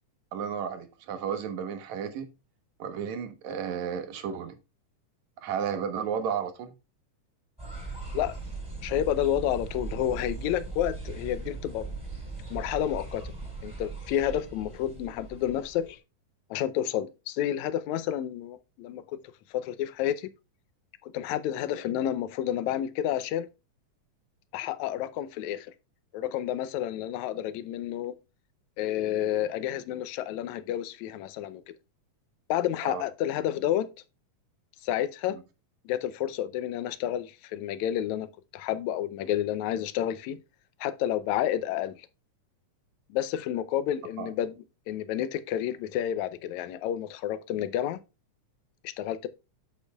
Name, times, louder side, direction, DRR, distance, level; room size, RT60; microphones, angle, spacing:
voice 1, 0.3-2.3 2.8-4.6 5.4-6.7 32.8-33.0 44.2-44.3, right 7 dB, 70° right, 2.4 m, -33 dB
sound 1, 7.6-16.0, right 3 dB, ahead, 4.2 m, -39 dB
voice 2, 8.8-11.9 12.5-13.3 13.6-16.0 16.5-19.2 19.5-20.3 21.0-23.5 24.5-25.7 26.1-28.2 28.8-31.6 32.5-33.9 34.8-35.4 35.9-40.4 40.8-42.1 43.1-44.5 44.9-48.0 48.8-49.3, left 11 dB, 75° left, 1.9 m, -30 dB
8.5 x 8.4 x 2.3 m
omnidirectional pair, 3.6 m